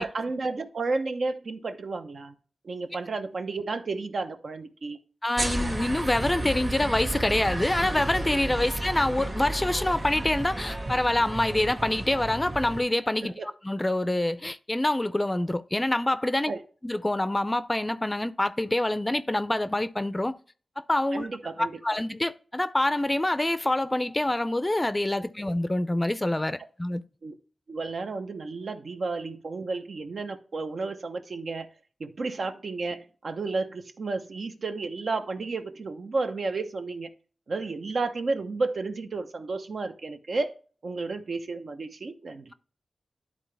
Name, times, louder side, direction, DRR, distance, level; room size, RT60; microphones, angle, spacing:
voice 1, 0.0-2.4 2.6-5.0 13.2-13.5 16.5-16.6 21.1-22.0 25.2-25.3 27.2-27.3 27.7-31.7 32.0-37.1 37.5-40.5 40.8-42.5, right 3 dB, 65° right, 0.9 m, -32 dB
voice 2, 5.2-13.3 13.6-16.5 16.8-20.3 20.8-21.3 21.6-27.0, left 1 dB, 20° left, 0.5 m, -26 dB
sound 1, 5.4-12.8, right 1 dB, 40° right, 1.7 m, -32 dB
11.5 x 3.9 x 3.3 m
wide cardioid pair, 80°, 0 cm